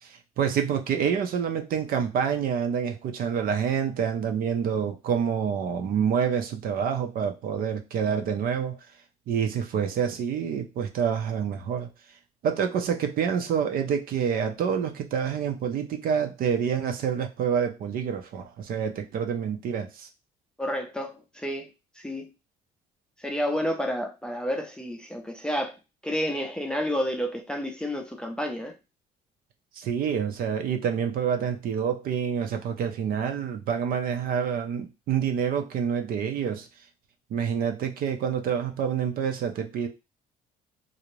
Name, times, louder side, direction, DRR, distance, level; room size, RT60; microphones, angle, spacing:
voice 1, 0.0-8.8 9.3-11.9 12.4-20.1 29.7-36.7 37.3-39.9, right 7 dB, 60° right, 0.5 m, -27 dB
voice 2, 20.6-22.3 23.2-28.8, equal, 5° left, 0.5 m, -30 dB
2.5 x 2.0 x 3.0 m
cardioid pair, 110°, 17 cm